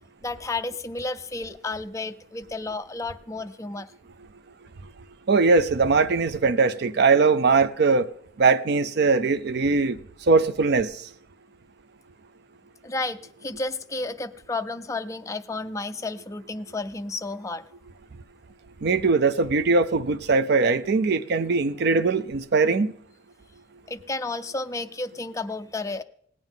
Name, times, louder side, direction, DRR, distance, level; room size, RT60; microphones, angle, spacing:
voice 1, 0.2-3.9 12.8-17.7 23.9-26.0, left 3 dB, 15° left, 0.4 m, -32 dB
voice 2, 5.3-8.1 8.4-10.0 10.3-10.9 18.8-22.9, right 4 dB, 55° right, 0.5 m, -21 dB
17.5 x 9.0 x 3.8 m
head